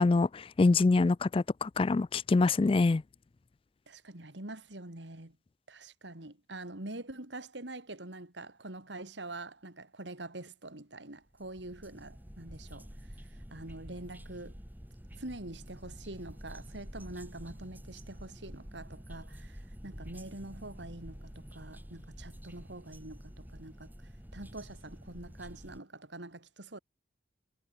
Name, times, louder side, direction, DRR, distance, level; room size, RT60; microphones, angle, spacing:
voice 1, 0.0-3.0, left 3 dB, 30° left, 0.3 m, -25 dB
voice 2, 3.9-5.4 5.7-14.6 15.2-26.8, right 2 dB, 75° right, 3.1 m, -45 dB
sound 1, 11.3-25.8, equal, 10° right, 2.3 m, -48 dB
head